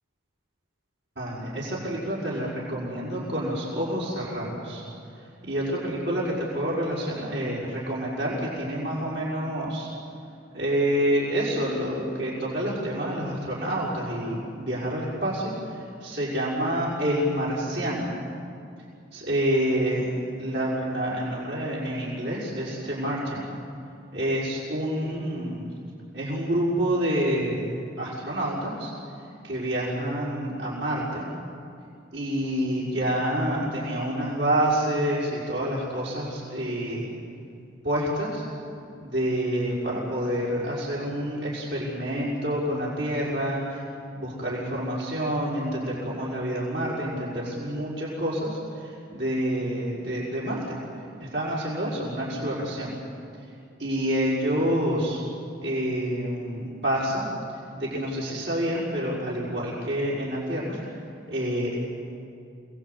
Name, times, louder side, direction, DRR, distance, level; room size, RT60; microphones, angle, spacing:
voice 1, 1.2-4.8 5.4-9.9 10.5-18.1 19.1-20.1 20.4-23.5 24.1-25.6 26.1-27.7 28.0-28.9 29.4-31.3 32.1-37.1 37.8-38.5 39.0-43.8 44.1-50.8 51.2-52.9 53.8-55.2 55.6-57.3 57.7-60.8 61.3-61.8, equal, 65° right, -6 dB, 6.0 m, -28 dB
29.0 x 20.5 x 8.5 m, 2.5 s
head